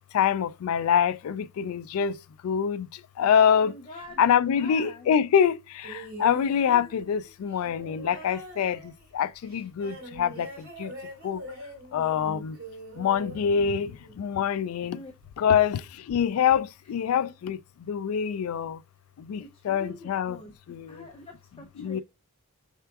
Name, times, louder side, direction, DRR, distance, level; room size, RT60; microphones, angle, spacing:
voice 1, 0.1-2.1 2.4-2.9 3.2-3.7 4.2-5.6 6.2-8.8 9.1-10.5 10.8-10.9 11.2-11.4 11.9-12.6 13.0-13.9 14.2-15.0 15.4-15.8 16.1-17.6 17.9-18.8 19.3-19.4 19.7-20.4 20.7-20.9 21.8-22.0, left 8 dB, 85° left, 0.3 m, -24 dB
voice 2, 3.5-5.1 14.9-15.1 17.1-17.3 19.4-22.0, left 2 dB, 25° left, 0.5 m, -46 dB
sound 1, 5.8-14.2 15.2-15.3, right 1 dB, 85° right, 2.2 m, -43 dB
5.7 x 3.6 x 2.3 m
head